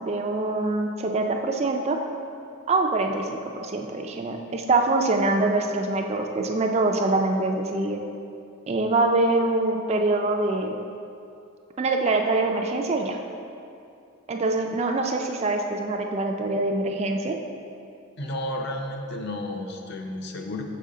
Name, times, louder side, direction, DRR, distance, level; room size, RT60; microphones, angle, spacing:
voice 1, 0.0-2.0 2.7-8.0 8.7-10.8 11.8-13.2 14.3-17.4, right 2 dB, 30° right, 3 dB, 0.3 m, -24 dB
voice 2, 18.2-20.6, left 1 dB, 50° left, 3 dB, 0.5 m, -32 dB
6.7 x 4.8 x 3.7 m, 2.5 s
head